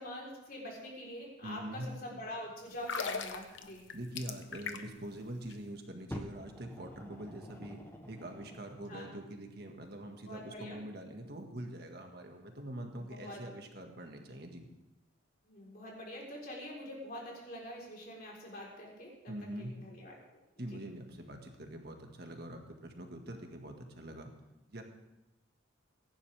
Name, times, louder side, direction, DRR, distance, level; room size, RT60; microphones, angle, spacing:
voice 1, 0.0-3.8 8.8-9.1 10.3-10.8 12.9-13.5 15.5-20.8, left 1 dB, 45° left, -3 dB, 4.0 m, -45 dB
voice 2, 1.4-1.9 3.9-14.7 19.3-19.7 20.6-24.3 24.7-24.8, right 1 dB, 50° right, 3 dB, 1.8 m, -44 dB
sound 1, 2.7-5.1 5.4-5.5, left 5 dB, 70° left, 1.0 m, -39 dB
Fire, 6.1-8.9 9.7-9.8, equal, 10° left, 1.1 m, -47 dB
22.5 x 11.0 x 3.5 m, 0.95 s
head